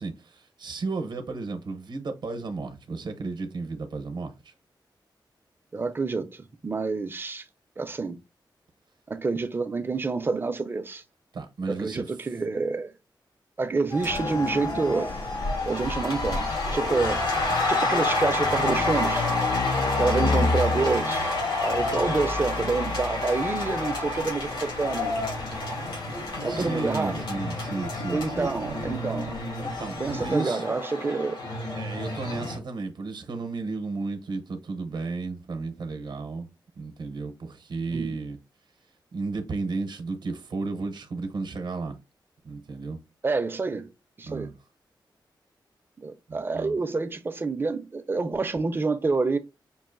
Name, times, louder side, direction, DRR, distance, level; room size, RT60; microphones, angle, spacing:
voice 1, 0.0-4.5 11.3-12.1 20.2-20.5 26.4-28.5 29.6-30.6 31.8-36.5 36.8-38.4 39.1-42.0 42.4-43.0 44.2-44.5 46.3-46.8, right 3 dB, 65° right, 0.7 m, -33 dB
voice 2, 5.7-7.4 7.8-8.2 9.1-11.0 11.7-12.9 13.6-15.1 15.7-17.2 17.7-19.3 20.0-21.3 21.6-25.1 26.4-27.2 28.1-29.4 30.0-31.4 37.9-38.2 43.2-43.9 44.2-44.5 46.0-49.4, right 3 dB, 25° right, 0.4 m, -28 dB
sound 1, 13.9-32.6, left 2 dB, 85° left, 2.2 m, -29 dB
sound 2, 14.0-30.4, left 3 dB, 50° left, 0.3 m, -33 dB
5.4 x 2.4 x 2.4 m
wide cardioid pair, 135°, 8 cm